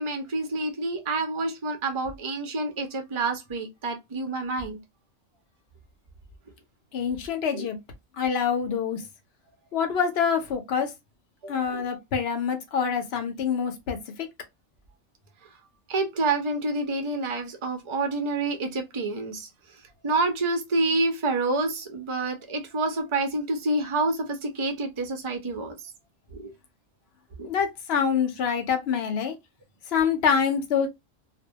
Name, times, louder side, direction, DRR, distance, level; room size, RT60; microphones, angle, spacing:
voice 1, 0.0-4.8 7.5-7.7 11.4-11.8 15.9-19.5 20.0-25.7 26.3-26.5 27.4-27.5, right 2 dB, 50° right, 0.3 m, -28 dB
voice 2, 6.9-7.8 8.2-9.0 9.7-10.9 11.5-14.0 27.4-29.3 29.9-30.9, left 7 dB, 60° left, 0.7 m, -25 dB
2.2 x 2.1 x 2.7 m
omnidirectional pair, 1.3 m